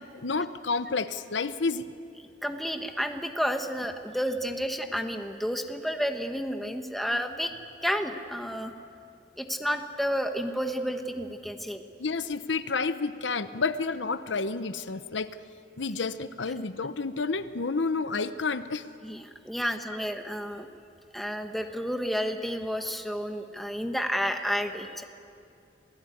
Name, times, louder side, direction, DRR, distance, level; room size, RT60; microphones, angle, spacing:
voice 1, 0.1-1.9 12.0-15.3 15.8-18.8, left 4 dB, 85° left, 12 dB, 0.9 m, -30 dB
voice 2, 2.4-7.5 7.8-8.7 9.4-11.8 19.0-20.7 21.1-25.0, equal, ahead, 5 dB, 1.4 m, -31 dB
27.0 x 18.0 x 9.4 m, 2.5 s
head